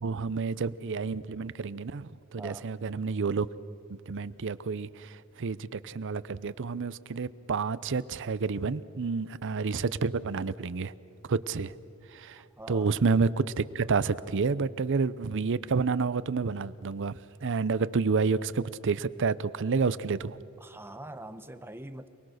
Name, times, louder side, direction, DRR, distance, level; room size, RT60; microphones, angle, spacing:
voice 1, 0.0-3.5 3.9-10.9 11.3-11.7 12.1-12.4 12.7-20.4, right 4 dB, 60° right, 0.6 m, -29 dB
voice 2, 2.4-2.7 12.3-13.0 20.6-22.1, right 1 dB, 10° right, 0.8 m, -44 dB
28.0 x 20.5 x 6.5 m
head